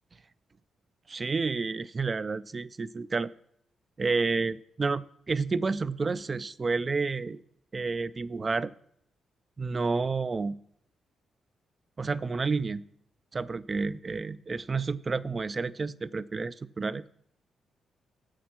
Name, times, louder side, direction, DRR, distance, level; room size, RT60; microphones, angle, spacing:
voice 1, 1.1-3.3 4.0-7.4 7.7-8.7 9.6-10.6 12.0-12.8 13.3-17.0, right 4 dB, 25° right, 16 dB, 0.3 m, -30 dB
9.3 x 7.3 x 5.9 m, 0.70 s
wide cardioid pair, 165°, 0 cm